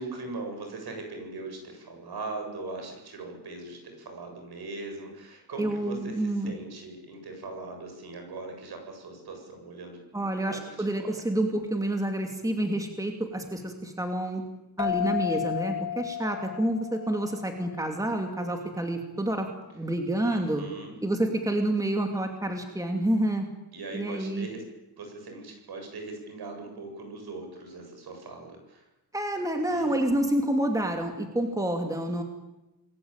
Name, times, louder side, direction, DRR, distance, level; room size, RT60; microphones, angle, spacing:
voice 1, 0.0-11.1 20.2-20.9 23.7-24.6 25.0-28.8 29.7-30.0, right 3 dB, 70° right, 4 dB, 7.9 m, -40 dB
voice 2, 5.6-6.5 10.1-14.4 14.8-19.5 19.7-20.6 21.0-23.5 23.9-24.5 29.1-32.2, right 1 dB, 10° right, 4 dB, 2.8 m, -28 dB
sound 1, 14.8-18.1, left 11 dB, 90° left, 2.0 m, -33 dB
27.5 x 21.5 x 9.0 m, 1.0 s
wide cardioid pair, 175°, 40 cm